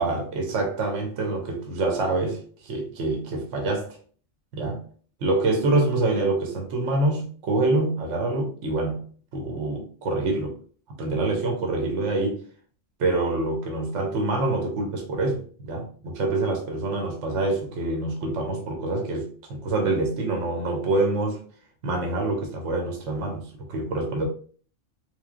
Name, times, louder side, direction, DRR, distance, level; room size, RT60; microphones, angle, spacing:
voice 1, 0.0-4.0 4.5-4.8 5.2-9.0 9.3-10.6 10.9-12.4 13.0-21.4 21.8-24.3, right 2 dB, 65° right, 1.1 m, -26 dB
3.8 x 3.2 x 2.4 m
omnidirectional pair, 1.4 m